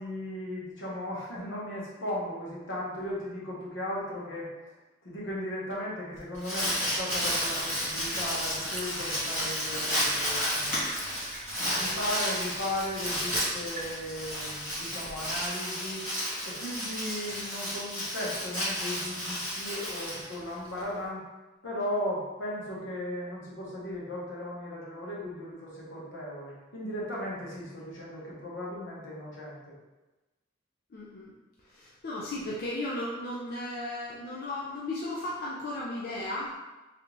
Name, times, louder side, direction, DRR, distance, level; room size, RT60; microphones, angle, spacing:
voice 1, 0.0-4.5 5.0-10.8 11.1-16.1 16.5-21.3 21.6-29.7, left 1 dB, 80° left, -5 dB, 1.0 m, -36 dB
Crumpling crinkling, 6.2-20.8, equal, 10° left, 1.4 m, -32 dB
Liquid, 7.1-15.5, right 2 dB, 35° right, 0.5 m, -44 dB
voice 2, 30.9-31.3 31.7-36.5, left 1 dB, 50° left, -5 dB, 0.4 m, -35 dB
3.3 x 2.5 x 3.0 m, 1.1 s
head